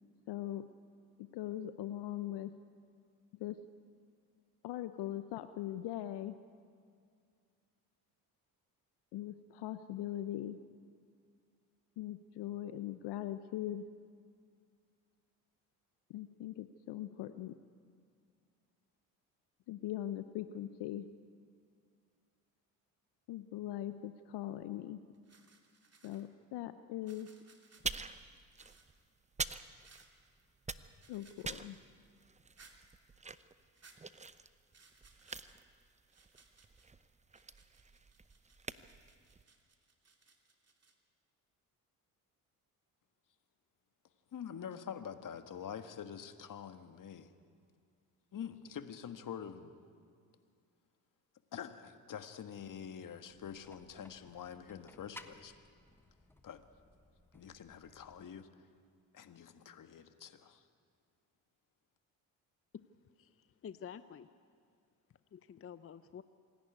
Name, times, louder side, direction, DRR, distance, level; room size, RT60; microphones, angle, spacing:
voice 1, 0.3-0.6 1.2-2.5 3.4-3.6 4.6-6.4 9.1-10.6 12.0-13.8 16.1-17.6 19.7-21.1 23.3-25.0 26.0-27.3 31.1-31.8, left 13 dB, 65° left, 11 dB, 0.8 m, -41 dB
sound 1, 24.6-24.8 25.1-26.3 27.0-27.9 28.6-29.2 29.8-30.3 31.0-31.9 32.5-32.8 33.7-34.0 34.7-35.6 36.1-36.9 37.3-40.9, right 4 dB, 35° right, 2.9 m, -64 dB
sound 2, 27.8-30.3 30.6-39.4, right 4 dB, 15° right, 0.8 m, -45 dB
voice 2, 44.3-47.3 48.3-49.8 51.5-55.5 56.4-56.6 57.3-58.5 59.1-60.6, left 8 dB, 45° left, 9 dB, 1.6 m, -46 dB
sound 3, 53.3-58.3, left 1 dB, 5° left, 1.4 m, -59 dB
voice 3, 63.2-64.3 65.3-66.2, left 8 dB, 30° left, 13 dB, 0.6 m, -49 dB
26.5 x 11.5 x 9.6 m, 2.2 s
hypercardioid pair, 60°, 43 cm